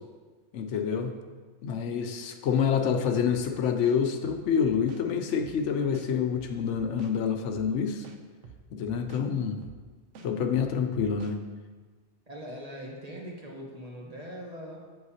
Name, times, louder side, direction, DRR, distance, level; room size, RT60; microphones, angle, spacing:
voice 1, 0.5-1.1 1.6-8.1 8.7-9.6 10.2-11.4, left 7 dB, 80° left, 6 dB, 0.9 m, -27 dB
sound 1, 3.3-3.5 3.8-5.0 5.4-5.6 5.9-7.1 7.5-7.7 8.0-9.3 9.6-9.8 10.1-11.4, right 5 dB, 80° right, 1.0 m, -48 dB
voice 2, 10.2-10.7 12.3-14.8, equal, 35° right, -2 dB, 1.2 m, -42 dB
7.8 x 7.0 x 2.8 m, 1.4 s
omnidirectional pair, 1.2 m